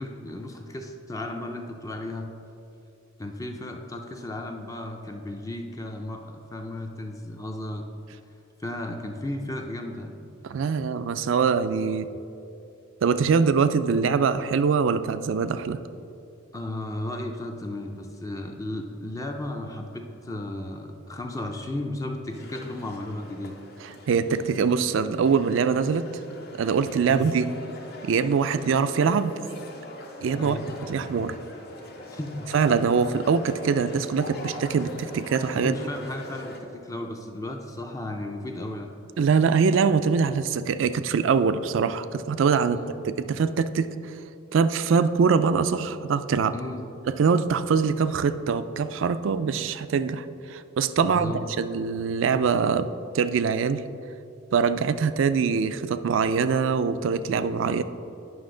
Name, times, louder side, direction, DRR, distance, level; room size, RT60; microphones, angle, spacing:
voice 1, 0.0-2.3 3.2-7.9 8.6-10.2 16.5-23.6 27.1-27.3 30.4-30.7 32.1-32.5 35.6-39.0 42.7-42.9 46.5-46.9 51.0-51.5, left 1 dB, 15° left, 3 dB, 0.4 m, -34 dB
voice 2, 10.4-12.1 13.0-15.8 24.1-26.1 26.5-27.5 28.0-29.4 30.2-30.6 30.9-31.4 32.5-35.7 39.2-42.8 43.3-43.9 44.5-46.5 47.1-52.9 53.1-53.8 54.5-57.8, right 5 dB, 70° right, 13 dB, 0.4 m, -23 dB
sound 1, 22.3-36.6, left 1 dB, 50° left, 0.9 m, -42 dB
9.5 x 5.6 x 3.8 m, 2.6 s
head